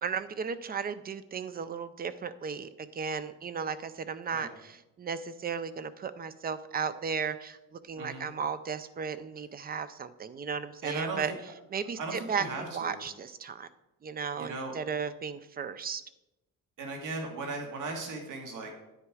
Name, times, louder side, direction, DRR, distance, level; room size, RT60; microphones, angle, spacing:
voice 1, 0.0-11.3 11.7-13.7 14.0-16.0, right 6 dB, 25° right, 13 dB, 0.4 m, -35 dB
voice 2, 8.0-8.3 9.6-9.7 10.8-11.3 12.0-13.0 14.4-14.7 16.8-18.7, right 3 dB, 60° right, 2 dB, 2.0 m, -37 dB
9.8 x 9.2 x 4.8 m, 0.94 s
cardioid pair, 165°, 35 cm